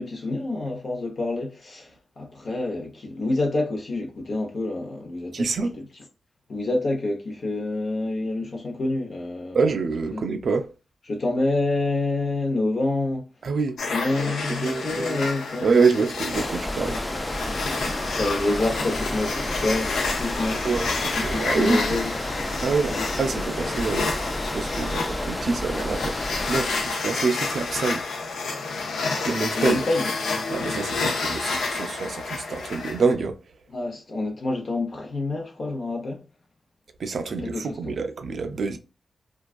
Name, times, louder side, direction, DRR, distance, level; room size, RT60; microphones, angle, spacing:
voice 1, 0.0-5.5 5.8-5.9 6.5-9.6 10.1-10.2 11.1-13.3 13.9-15.7 17.4-20.6 21.2-22.2 22.9-23.0 29.5-30.1 33.7-36.2 37.4-38.0, left 2 dB, 65° left, 0.8 m, -27 dB
voice 2, 5.3-5.7 9.5-10.7 13.4-13.8 14.6-15.2 15.6-17.0 20.6-21.8 22.6-24.1 24.5-26.2 26.5-28.1 29.2-29.8 30.5-33.4 37.0-38.8, right 4 dB, 70° right, 0.3 m, -26 dB
sound 1, 13.8-33.1, left 3 dB, 90° left, 0.4 m, -30 dB
sound 2, 16.3-26.9, left 1 dB, 25° left, 0.4 m, -31 dB
2.3 x 2.3 x 2.3 m
supercardioid pair, 45°, 0 cm